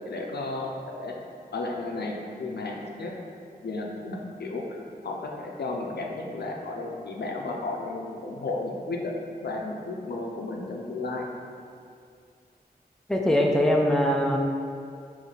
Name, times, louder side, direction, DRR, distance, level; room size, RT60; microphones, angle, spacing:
voice 1, 0.1-1.1 1.5-3.1 3.6-4.6 5.0-9.2 9.4-11.3, left 2 dB, 80° left, 0 dB, 0.5 m, -33 dB
voice 2, 13.1-14.4, left 1 dB, 5° left, 0 dB, 0.3 m, -22 dB
3.4 x 2.6 x 3.9 m, 2.3 s
wide cardioid pair, 75°, 17 cm